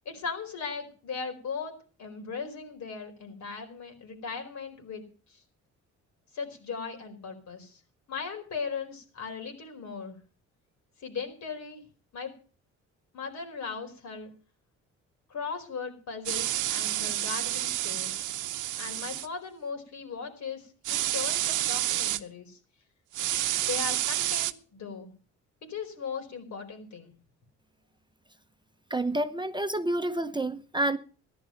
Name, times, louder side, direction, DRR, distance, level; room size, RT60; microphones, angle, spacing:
voice 1, 0.0-1.7 2.0-5.0 5.3-5.4 6.3-7.8 8.1-10.2 11.0-11.8 12.1-12.3 13.1-14.3 15.3-18.3 18.8-22.6 23.7-25.1 25.6-27.1, left 5 dB, 65° left, 4.7 m, -38 dB
sound 1, 16.3-19.3 20.8-22.2 23.1-24.5, right 14 dB, 80° right, 0.9 m, -29 dB
voice 2, 28.9-31.0, right 1 dB, 15° right, 0.8 m, -29 dB
14.5 x 11.5 x 5.8 m
cardioid pair, 90°, 30 cm